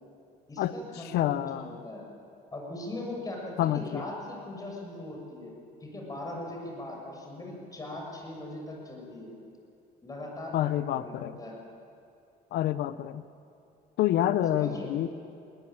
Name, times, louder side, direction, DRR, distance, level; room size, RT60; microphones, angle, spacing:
voice 1, 0.5-2.0 2.5-5.5 5.8-9.3 10.0-11.5 14.5-14.9, left 1 dB, 20° left, 0 dB, 6.8 m, -40 dB
voice 2, 1.1-1.8 3.6-4.1 10.5-11.4 12.5-13.2 14.0-15.1, left 12 dB, 75° left, 15 dB, 0.9 m, -28 dB
20.5 x 19.5 x 8.9 m, 2.6 s
cardioid pair, 110°, 17 cm